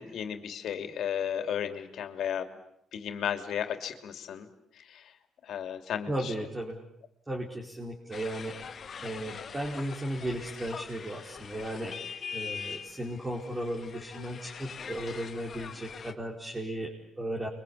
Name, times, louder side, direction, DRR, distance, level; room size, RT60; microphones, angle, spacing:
voice 1, 0.0-2.5 2.9-4.5 4.7-5.1 5.4-6.3, left 9 dB, 70° left, 8 dB, 3.0 m, -34 dB
voice 2, 6.1-6.8 7.3-8.6 9.0-12.0 12.3-17.5, right 1 dB, 20° right, 0 dB, 4.8 m, -35 dB
sound 1, 8.1-16.1, left 6 dB, 45° left, 2.2 m, -42 dB
29.0 x 24.0 x 8.6 m, 0.73 s
cardioid pair, 90°, 0 cm